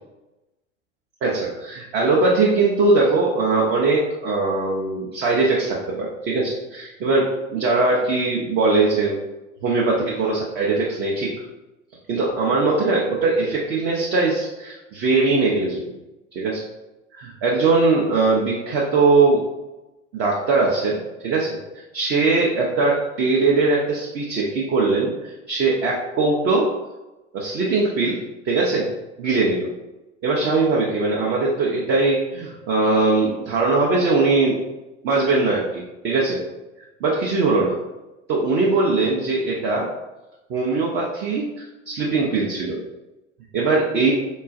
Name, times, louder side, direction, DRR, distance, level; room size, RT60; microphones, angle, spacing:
voice 1, 1.2-9.2 9.6-11.3 12.1-15.8 16.3-16.6 17.1-19.4 20.1-21.0 21.2-21.6 21.9-26.7 27.3-28.2 28.4-28.9 29.2-29.7 30.2-34.6 35.0-36.4 37.0-37.7 38.3-39.9 40.5-42.8 43.5-44.1, right 3 dB, 30° right, -3 dB, 0.5 m, -20 dB
3.8 x 2.3 x 2.4 m, 1.0 s
figure-of-eight pair, 75°, 39 cm